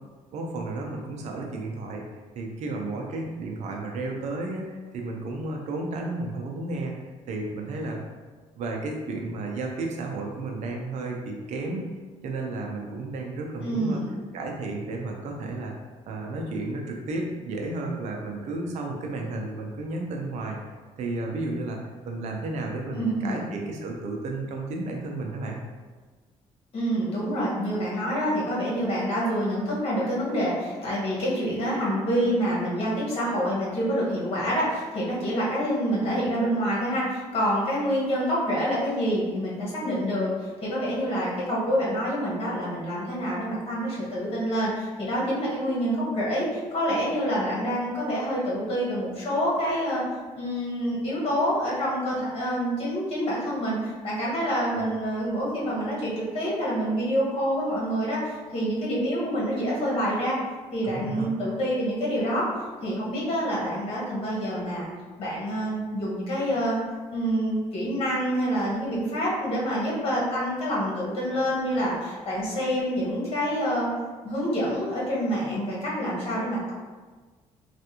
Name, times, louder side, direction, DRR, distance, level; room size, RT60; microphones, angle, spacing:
voice 1, 0.3-2.0 2.4-6.9 7.3-8.0 8.6-11.9 12.2-14.0 14.3-15.7 16.1-20.6 21.0-25.6 54.8-54.9 60.8-61.3, right 2 dB, 70° right, 1 dB, 0.6 m, -32 dB
voice 2, 13.6-14.2 22.9-23.4 26.7-50.0 50.4-60.4 60.7-62.5 62.8-64.9 65.2-66.8 67.1-73.9 74.2-76.7, equal, 50° left, -6 dB, 1.4 m, -27 dB
3.3 x 2.5 x 2.9 m, 1.4 s
cardioid pair, 100°, 12 cm